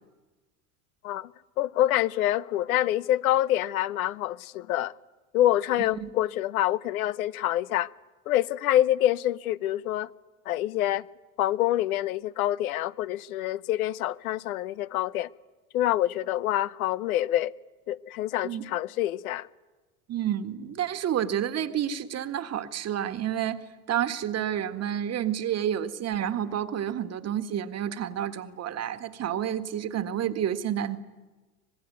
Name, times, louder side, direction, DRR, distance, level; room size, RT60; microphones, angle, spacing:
voice 1, 1.6-4.9 5.3-7.9 8.3-10.1 10.5-11.0 11.4-15.3 15.7-17.5 17.9-19.5, left 13 dB, 75° left, 0.9 m, -26 dB
voice 2, 20.1-31.0, right 10 dB, 35° right, 1.8 m, -30 dB
25.0 x 20.5 x 9.4 m
hypercardioid pair, 85°, 43 cm